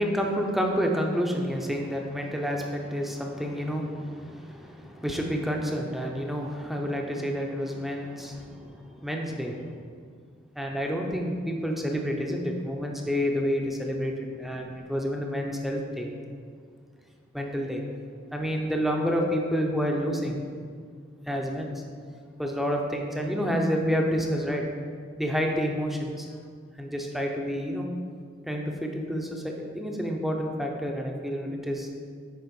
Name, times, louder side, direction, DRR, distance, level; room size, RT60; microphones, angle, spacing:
voice 1, 0.0-9.7 10.6-16.1 17.3-17.8 18.3-20.4 21.3-21.8 22.4-24.6 25.2-26.3 26.8-27.9 28.4-31.9, equal, ahead, 1 dB, 0.6 m, -29 dB
9.3 x 3.5 x 5.3 m, 2.1 s
head